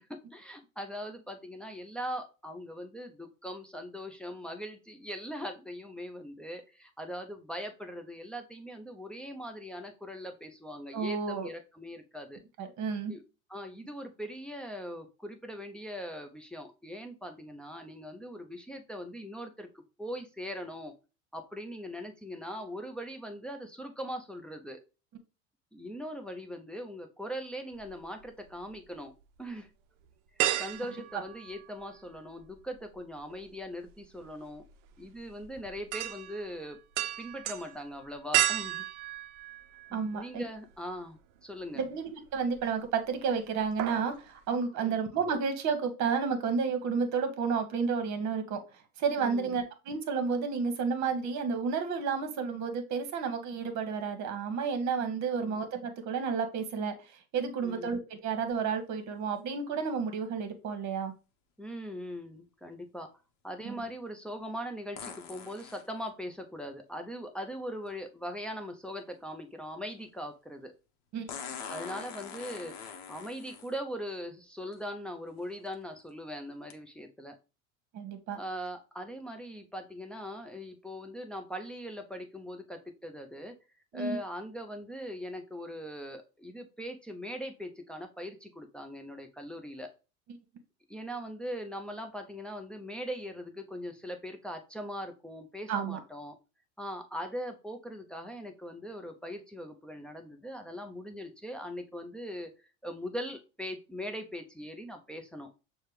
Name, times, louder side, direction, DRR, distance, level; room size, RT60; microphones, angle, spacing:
voice 1, 0.0-12.4 13.1-13.2 13.5-20.9 21.3-24.8 25.7-29.1 29.4-29.7 30.6-34.6 35.0-36.8 37.2-38.9 39.9-41.8 44.8-45.0 49.2-49.6 55.4-55.6 57.6-57.9 61.6-63.1 63.4-70.7 71.7-77.4 78.4-83.5 83.9-89.9 90.9-96.4 96.8-102.5 102.8-105.5, equal, ahead, 4 dB, 0.4 m, -41 dB
voice 2, 10.9-11.5 12.6-13.1 31.1-31.2 39.9-40.4 41.7-48.6 49.0-56.9 57.3-61.1 63.6-63.8 71.1-71.3 77.9-78.4 83.9-84.2 95.7-96.0, right 5 dB, 40° right, 8 dB, 1.1 m, -31 dB
sound 1, 27.8-28.7 29.2-29.3 30.4-32.1 32.4-40.3 40.7-40.8 42.3-42.8 43.1-43.3 43.6-44.2 44.5-44.6, right 12 dB, 60° right, 0.6 m, -34 dB
sound 2, 58.5-58.6 65.0-65.9 67.9-68.0 71.3-73.8 74.7-74.8 75.5-75.7 76.7-76.8, left 7 dB, 40° left, 0.9 m, -43 dB
6.4 x 2.3 x 3.2 m, 0.32 s
hypercardioid pair, 85°, 42 cm